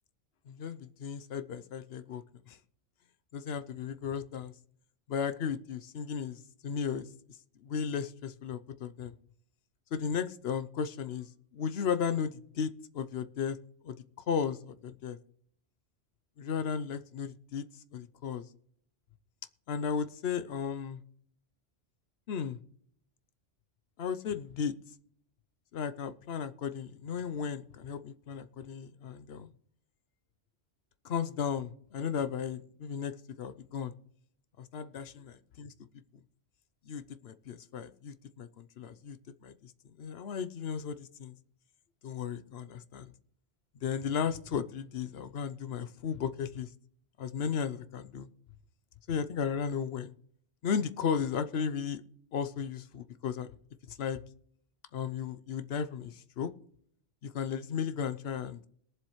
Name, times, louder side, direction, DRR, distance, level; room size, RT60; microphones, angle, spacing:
voice 1, 0.5-2.6 3.3-4.5 5.1-7.1 7.6-9.1 9.9-13.6 13.8-14.0 14.3-15.2 16.4-17.7 17.9-18.4 19.7-21.0 22.3-22.6 24.0-24.7 25.7-29.5 31.0-33.9 34.6-35.7 36.9-39.7 40.0-41.4 42.0-43.1 43.8-46.7 47.2-48.3 49.1-50.1 50.6-52.0 52.3-53.5 53.9-54.2 54.9-56.5 57.2-58.6, left 7 dB, 60° left, 12 dB, 0.9 m, -35 dB
21.5 x 7.3 x 3.1 m, 0.65 s
omnidirectional pair, 1.2 m